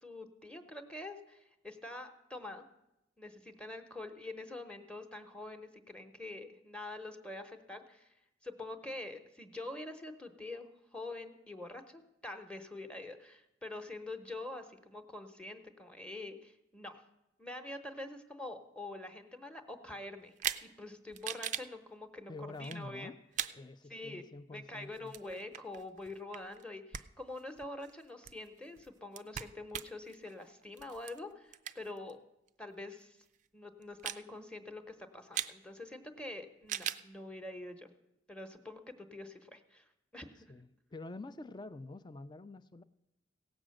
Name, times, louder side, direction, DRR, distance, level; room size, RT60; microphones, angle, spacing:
voice 1, 0.0-2.6 3.2-8.2 8.4-17.0 17.4-20.3 20.6-23.1 23.9-24.3 24.5-32.2 32.6-33.2 33.5-37.9 38.3-39.9 40.1-40.5, left 2 dB, 5° left, 7 dB, 0.9 m, -45 dB
sound 1, 20.4-20.7 21.1-21.7 22.6-22.8 23.3-23.6 24.9-26.6 26.9-27.1 27.4-32.1 32.5-32.6 33.3-33.5 33.8-34.2 35.3-35.5 36.6-37.0, right 10 dB, 40° right, 0.4 m, -40 dB
voice 2, 22.3-23.2 23.5-25.1 40.5-42.8, left 2 dB, 25° left, 14 dB, 0.4 m, -47 dB
16.5 x 6.1 x 7.7 m, 0.89 s
head